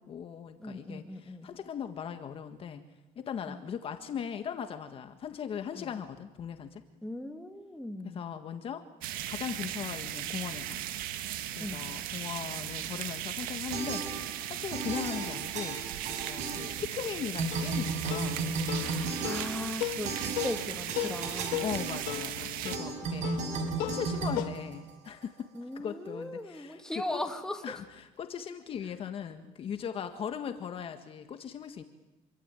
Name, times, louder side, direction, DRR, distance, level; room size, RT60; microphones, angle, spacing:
voice 1, 0.0-2.8 3.2-6.8 8.0-8.8 9.3-10.8 11.6-14.0 14.5-15.8 16.2-18.5 21.6-25.5 25.8-26.8 27.1-27.2 27.6-31.8, left 8 dB, 40° left, 8 dB, 1.7 m, -39 dB
voice 2, 0.6-1.5 3.5-3.6 5.7-5.9 7.0-8.3 11.6-11.8 18.7-21.7 25.5-27.7, left 1 dB, 5° left, 5 dB, 2.5 m, -38 dB
sound 1, 9.0-22.8, right 12 dB, 75° right, 2.0 m, -37 dB
sound 2, 13.7-14.5 14.7-17.1 17.4-25.2, right 4 dB, 50° right, 6.7 m, -35 dB
sound 3, 17.5-24.5, left 15 dB, 90° left, 1.8 m, -37 dB
27.0 x 24.0 x 9.1 m, 0.99 s
cardioid pair, 150°, 15 cm